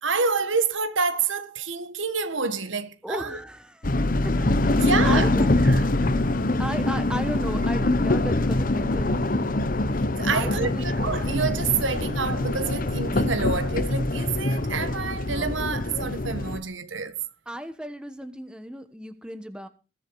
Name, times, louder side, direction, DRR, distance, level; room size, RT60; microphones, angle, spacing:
voice 1, 0.0-3.4 4.8-5.9 10.2-17.2, right 4 dB, 90° right, 1.6 m, -28 dB
voice 2, 3.0-5.5 6.6-9.2 10.3-10.9 17.5-19.7, equal, 5° right, 1.2 m, -35 dB
sound 1, 3.8-16.6, left 2 dB, 45° left, 1.0 m, -24 dB
20.5 x 7.3 x 4.7 m
head